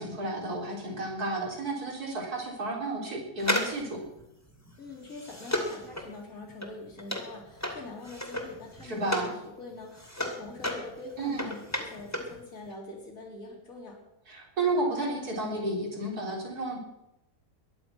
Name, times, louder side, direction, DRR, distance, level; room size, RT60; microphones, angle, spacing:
voice 1, 0.0-4.0 8.8-9.3 11.2-11.5 14.3-16.8, right 2 dB, 70° right, -1 dB, 4.7 m, -32 dB
sound 1, 3.4-9.4 9.7-12.4 12.6-12.7, left 1 dB, 10° left, 2.6 m, -34 dB
voice 2, 4.8-14.0, left 2 dB, 60° left, -5 dB, 3.5 m, -44 dB
22.0 x 10.5 x 6.0 m, 0.90 s
omnidirectional pair, 1.7 m